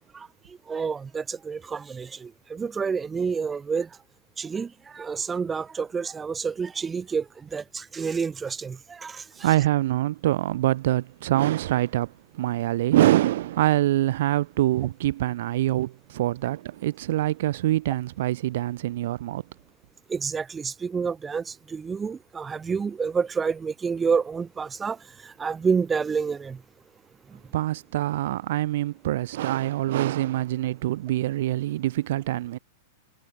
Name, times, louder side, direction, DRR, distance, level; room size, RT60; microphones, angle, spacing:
voice 1, 0.7-3.9 4.4-7.2 7.5-9.5 20.1-25.0 25.4-26.6, right 5 dB, 20° right, 1.3 m, -28 dB
voice 2, 9.4-19.4 27.5-32.6, right 14 dB, 60° right, 1.1 m, -25 dB
hypercardioid pair, 100°, 0 cm